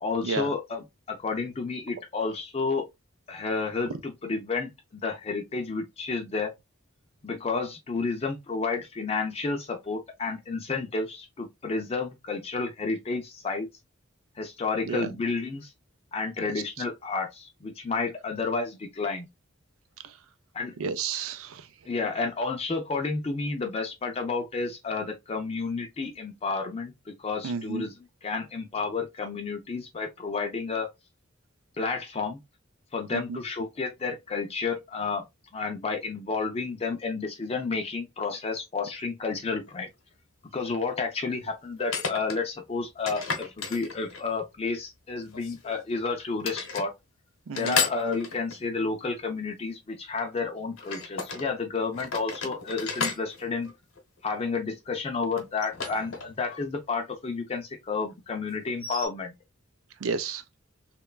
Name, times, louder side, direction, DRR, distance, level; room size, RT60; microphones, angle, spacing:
voice 1, 0.0-2.8 3.3-6.5 7.2-13.7 14.4-15.7 16.1-19.3 20.5-20.8 21.9-27.9 28.2-30.9 31.8-32.4 32.9-35.2 35.5-39.9 40.5-46.9 47.5-53.7 54.2-59.3, left 4 dB, 30° left, 0.4 m, -31 dB
voice 2, 20.8-21.7 27.4-27.9 33.1-33.4 47.5-47.8 60.0-60.4, right 5 dB, 85° right, 0.4 m, -31 dB
sound 1, 39.7-39.8 41.8-42.4 43.1-44.4 45.3-46.0 46.4-46.9 47.5-48.6 50.8-51.5 51.9-54.3 55.4-56.6 56.9-57.0 58.6-59.1, left 5 dB, 80° left, 0.8 m, -33 dB
3.0 x 2.2 x 2.2 m
head